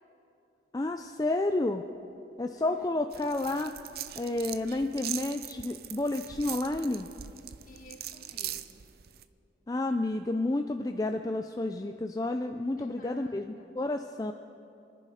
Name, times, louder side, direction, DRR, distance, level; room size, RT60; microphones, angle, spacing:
voice 1, 0.7-1.8 2.4-3.7 4.2-7.1 9.7-14.3, left 2 dB, 20° left, 6 dB, 0.4 m, -30 dB
voice 2, 2.5-2.9 7.6-8.9 12.8-13.8, left 1 dB, 45° left, 4 dB, 1.4 m, -54 dB
sound 1, 3.1-9.2, right 11 dB, 55° right, 0.5 m, -41 dB
27.0 x 10.5 x 5.0 m, 2.7 s
head